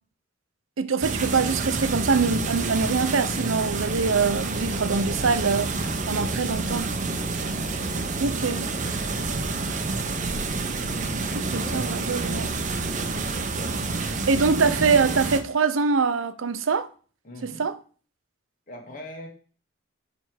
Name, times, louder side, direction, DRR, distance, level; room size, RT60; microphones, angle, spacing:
voice 1, 0.8-5.7 6.1-6.9 8.2-8.7 11.3-12.5 14.0-16.9 17.4-17.7, right 4 dB, 80° right, 0.7 m, -24 dB
sound 1, 1.0-15.4, right 3 dB, 40° right, 0.7 m, -28 dB
voice 2, 11.2-12.0 12.9-13.2 14.1-14.2 17.2-17.7 18.7-19.3, left 1 dB, 40° left, 2.0 m, -42 dB
8.7 x 3.5 x 6.3 m
head